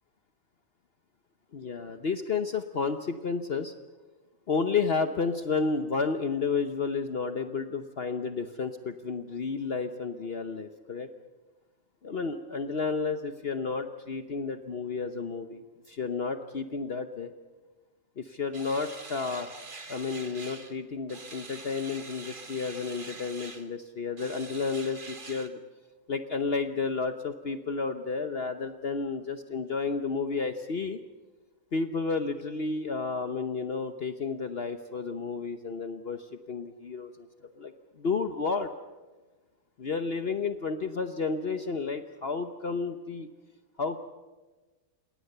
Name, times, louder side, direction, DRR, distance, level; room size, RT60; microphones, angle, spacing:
voice 1, 1.5-3.7 4.5-11.1 12.0-17.3 18.2-19.5 19.9-25.6 26.1-31.0 31.7-37.1 37.6-37.7 38.0-38.7 39.8-43.3 43.8-44.0, left 4 dB, 50° left, 8 dB, 1.1 m, -31 dB
sound 1, 18.5-20.8 21.1-23.7 24.2-25.5, right 3 dB, 35° right, 1.7 m, -45 dB
29.5 x 18.0 x 6.8 m, 1.2 s
omnidirectional pair, 1.5 m